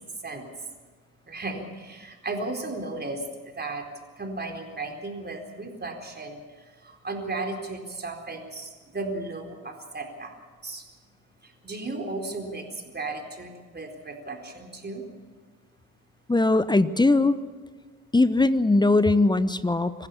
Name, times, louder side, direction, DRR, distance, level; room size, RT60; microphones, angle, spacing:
voice 1, 1.3-3.8 4.2-10.3 10.6-10.8 11.4-15.1, right 2 dB, 25° right, 3 dB, 4.2 m, -35 dB
voice 2, 16.3-17.4 18.1-20.1, left 2 dB, 10° left, 14 dB, 1.0 m, -20 dB
25.5 x 15.5 x 7.1 m, 1.5 s
hypercardioid pair, 55°, 43 cm